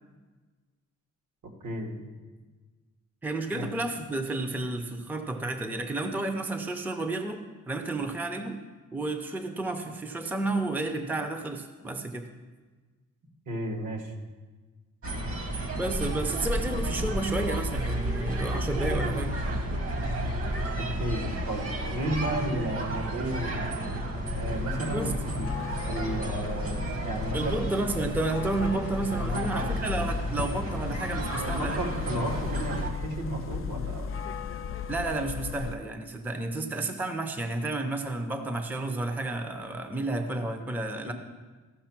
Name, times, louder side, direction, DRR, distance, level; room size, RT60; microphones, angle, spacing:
voice 1, 1.6-2.0 3.5-3.7 13.5-14.1 21.0-24.0 24.4-25.5 25.9-27.7 29.1-29.7 31.3-34.1 41.1-41.2, right 1 dB, 70° right, 2 dB, 1.8 m, -33 dB
voice 2, 3.2-8.6 8.9-12.3 15.7-19.3 24.9-25.1 27.3-31.8 32.2-32.3 34.9-41.1, right 2 dB, 5° right, 6 dB, 0.5 m, -31 dB
sound 1, 15.0-32.9, right 1 dB, 45° right, 1.3 m, -32 dB
sound 2, 24.3-35.8, left 7 dB, 40° left, 0.4 m, -36 dB
14.5 x 6.3 x 5.9 m, 1.3 s
wide cardioid pair, 150°, 33 cm